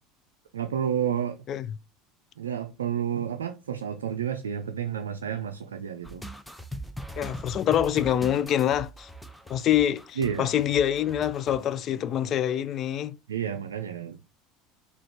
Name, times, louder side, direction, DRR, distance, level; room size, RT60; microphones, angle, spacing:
voice 1, 0.5-1.4 2.4-6.3 10.2-10.5 13.3-14.2, right 8 dB, 80° right, 0.4 m, -30 dB
sound 1, 6.0-11.7, equal, ahead, 0.6 m, -41 dB
voice 2, 7.2-9.1 9.5-13.2, left 10 dB, 45° left, 0.4 m, -25 dB
4.9 x 2.4 x 4.5 m
figure-of-eight pair, 75°, 0 cm